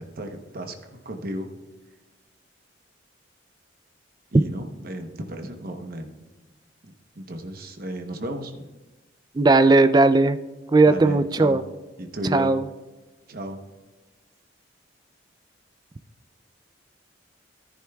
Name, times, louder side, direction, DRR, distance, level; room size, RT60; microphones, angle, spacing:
voice 1, 0.0-1.5 4.3-6.2 6.8-8.7 10.9-11.6 12.0-12.5 13.3-13.6, right 1 dB, 50° right, 5 dB, 1.0 m, -34 dB
voice 2, 9.4-10.4 10.7-11.6 12.3-12.6, right 3 dB, 20° right, 12 dB, 0.3 m, -17 dB
14.5 x 10.5 x 2.3 m, 1.2 s
head